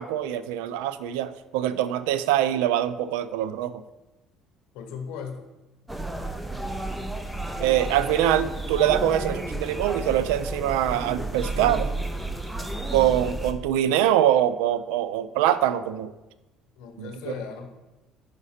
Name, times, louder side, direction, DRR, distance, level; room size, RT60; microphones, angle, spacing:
voice 1, 0.0-3.8 7.6-11.9 12.9-16.1 17.0-17.3, right 11 dB, 90° right, 13 dB, 0.3 m, -24 dB
voice 2, 4.7-5.5 16.8-17.7, left 6 dB, 80° left, 5 dB, 0.7 m, -37 dB
sound 1, 5.9-13.5, right 2 dB, 5° right, 0.6 m, -31 dB
5.1 x 4.9 x 4.2 m, 1.1 s
supercardioid pair, 90°, 0 cm